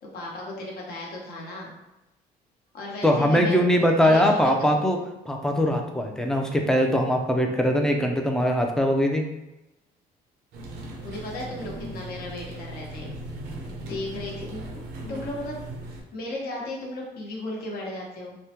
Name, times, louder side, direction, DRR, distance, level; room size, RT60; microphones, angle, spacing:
voice 1, 0.0-1.7 2.7-3.6 4.0-4.6 11.0-13.1 13.7-14.8 15.1-15.6 15.9-18.3, left 1 dB, 65° left, -2 dB, 1.0 m, -35 dB
voice 2, 3.0-5.0 5.3-9.2, equal, 5° left, 2 dB, 0.4 m, -21 dB
sound 1, 10.5-16.0, right 1 dB, 80° right, 0.7 m, -38 dB
3.5 x 2.1 x 2.8 m, 0.95 s
cardioid pair, 110°, 17 cm